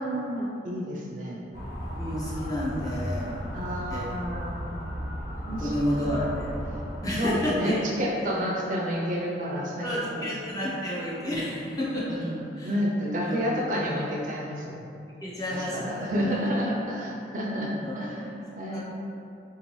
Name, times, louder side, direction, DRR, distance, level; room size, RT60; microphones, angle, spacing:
voice 1, 0.0-1.4 3.5-5.0 5.5-6.0 7.2-10.3 12.1-14.8 15.5-18.8, equal, 45° right, -3 dB, 0.4 m, -30 dB
Motor vehicle (road) / Siren, 1.5-7.2, equal, 50° left, 0.9 m, -35 dB
voice 2, 2.0-3.3 3.9-4.1 4.4-4.5 5.5-6.5 7.0-7.8 8.2-8.3 9.8-12.7 13.2-13.4 15.2-16.3 17.6-18.1 18.6-18.8, equal, 20° left, -7 dB, 0.6 m, -31 dB
3.8 x 2.6 x 3.0 m, 2.6 s
head